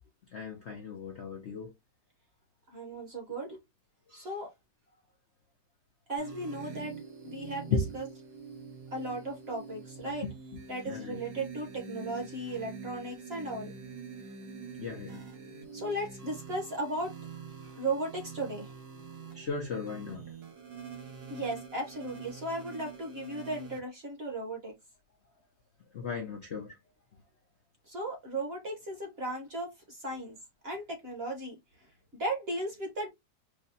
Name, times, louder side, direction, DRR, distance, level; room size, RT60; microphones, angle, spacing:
voice 1, 0.3-1.7 7.7-7.9 10.2-10.3 10.9-11.2 14.8-15.2 19.3-20.2 25.9-26.7, left 4 dB, 60° left, 0.7 m, -35 dB
voice 2, 2.7-3.6 4.1-4.5 6.1-6.9 7.2-8.1 8.9-10.3 10.7-13.7 15.7-17.1 17.6-18.7 21.3-24.7 27.9-30.4 30.6-31.6 32.1-33.1, right 1 dB, 40° right, 1.1 m, -36 dB
sound 1, 6.2-23.8, right 6 dB, 80° right, 1.8 m, -45 dB
4.8 x 2.2 x 2.6 m
omnidirectional pair, 1.9 m